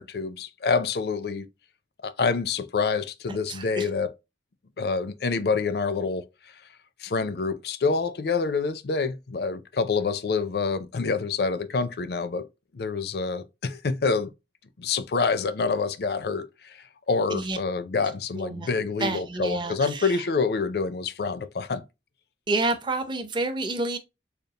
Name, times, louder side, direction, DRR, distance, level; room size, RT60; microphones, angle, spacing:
voice 1, 0.0-1.5 2.0-4.1 4.8-6.6 7.0-12.5 12.7-14.3 14.8-21.8, left 4 dB, 60° left, 0.4 m, -27 dB
voice 2, 3.5-3.9 17.3-17.6 18.3-18.7 19.0-20.2 22.5-24.0, right 2 dB, 25° right, 0.6 m, -29 dB
5.1 x 2.4 x 2.8 m
head